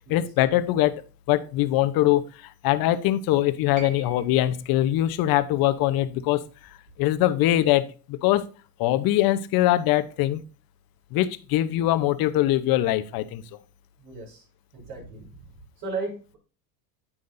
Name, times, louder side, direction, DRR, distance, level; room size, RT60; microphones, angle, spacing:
voice 1, 0.1-8.4 8.8-10.4 11.1-13.4, left 14 dB, 45° left, 12 dB, 0.9 m, -23 dB
sound 1, 3.7-7.9 9.1-9.2, right 1 dB, 15° right, 2.6 m, -48 dB
voice 2, 14.0-14.4 14.7-15.2 15.8-16.4, right 3 dB, 55° right, -7 dB, 5.1 m, -35 dB
9.5 x 8.6 x 2.6 m, 0.36 s
supercardioid pair, 115°, 48 cm